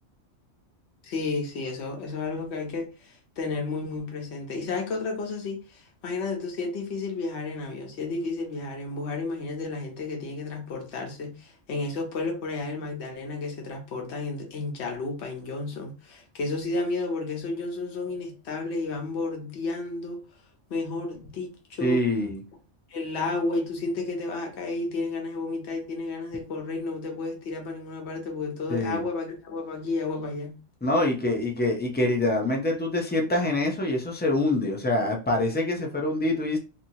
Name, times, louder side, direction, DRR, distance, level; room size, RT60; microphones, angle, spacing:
voice 1, 1.0-20.2 20.7-22.0 22.9-30.6, left 3 dB, 60° left, 1.1 m, -32 dB
voice 2, 21.8-22.4 28.7-29.0 30.8-36.6, left 1 dB, 15° left, 0.3 m, -25 dB
2.9 x 2.7 x 2.7 m
omnidirectional pair, 1.3 m